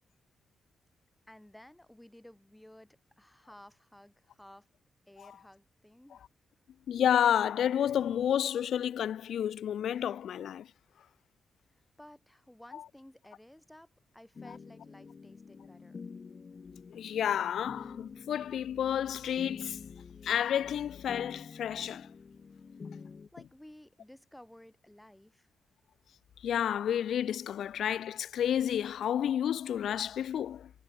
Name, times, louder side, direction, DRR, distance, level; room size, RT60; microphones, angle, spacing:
voice 1, 1.3-4.7 5.1-6.2 12.0-16.0 23.3-25.5, left 1 dB, 10° left, 4.9 m, -55 dB
voice 2, 6.9-10.7 12.7-12.8 16.9-19.9 20.2-22.1 26.4-30.7, left 9 dB, 75° left, 0.3 m, -30 dB
sound 1, 14.4-23.3, left 5 dB, 50° left, 1.5 m, -48 dB
supercardioid pair, 55°, 0 cm